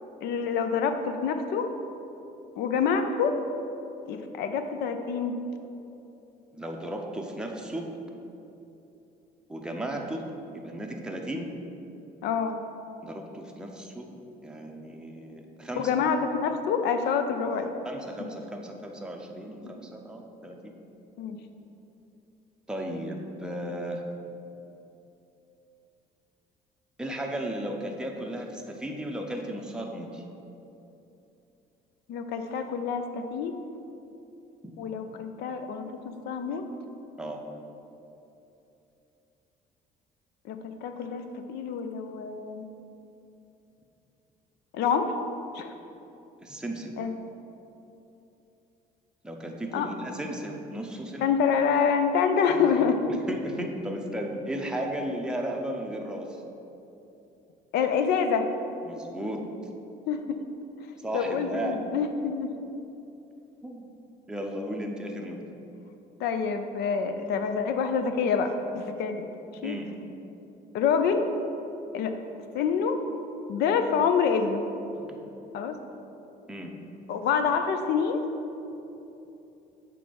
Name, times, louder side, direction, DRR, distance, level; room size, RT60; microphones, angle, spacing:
voice 1, 0.2-1.7 2.6-3.4 4.1-5.4 12.2-12.6 15.8-17.7 21.2-21.4 32.1-33.5 34.8-36.6 40.4-41.2 41.5-42.6 44.7-45.1 45.5-45.7 47.0-47.1 49.7-49.9 51.2-53.0 57.7-58.5 60.1-60.4 61.1-62.5 66.2-69.2 69.6-69.8 70.7-71.3 71.9-72.2 72.5-73.0 73.5-74.6 75.5-75.8 77.1-78.2, left 6 dB, 80° left, 7 dB, 0.5 m, -26 dB
voice 2, 6.5-7.9 9.5-10.2 10.5-11.5 13.0-14.1 14.4-15.9 17.8-20.7 22.7-24.0 27.0-30.2 34.6-34.8 37.2-37.4 46.4-46.9 49.2-51.3 52.5-52.8 53.3-56.4 58.8-59.4 61.0-61.8 63.6-63.9 64.3-65.4 69.6-69.9 75.0-75.1 76.5-76.7, right 1 dB, 5° right, 1 dB, 0.6 m, -35 dB
6.8 x 3.3 x 5.1 m, 2.9 s
cardioid pair, 110°, 17 cm